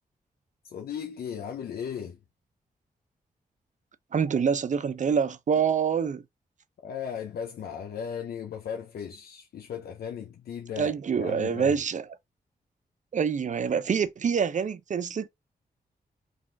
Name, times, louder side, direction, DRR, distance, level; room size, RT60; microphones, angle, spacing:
voice 1, 0.6-2.2 6.8-11.8, left 7 dB, 80° left, 0.6 m, -36 dB
voice 2, 4.1-6.2 10.8-12.0 13.1-15.3, right 6 dB, 50° right, 0.5 m, -26 dB
3.9 x 2.5 x 3.3 m
cardioid pair, 60°, 16 cm